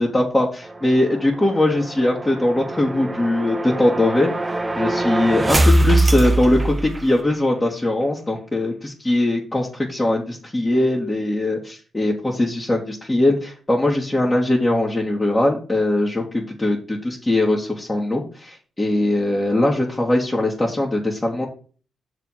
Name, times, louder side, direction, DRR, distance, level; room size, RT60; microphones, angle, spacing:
voice 1, 0.0-4.3 4.8-21.5, left 1 dB, 20° left, -4 dB, 2.2 m, -21 dB
sound 1, 0.6-7.4, right 2 dB, 25° right, 0.8 m, -22 dB
6.7 x 5.0 x 5.7 m, 0.39 s
supercardioid pair, 45°, 0 cm